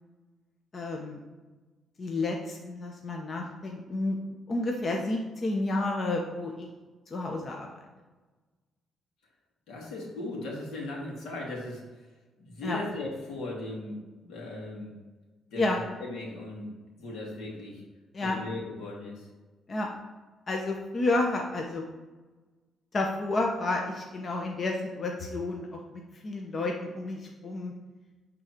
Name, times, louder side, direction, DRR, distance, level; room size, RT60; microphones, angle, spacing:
voice 1, 0.7-1.2 2.0-4.2 4.5-6.7 7.1-7.7 12.6-12.8 15.6-15.8 18.1-18.4 19.7-19.9 20.5-21.8 22.9-25.8 26.2-27.7, left 2 dB, 40° left, 1 dB, 0.9 m, -30 dB
voice 2, 9.7-11.8 12.4-14.0 14.2-14.9 15.5-16.7 16.9-17.8 18.2-19.3, left 2 dB, 80° left, -2 dB, 2.4 m, -38 dB
10.5 x 3.9 x 4.5 m, 1.3 s
cardioid pair, 90°, 0 cm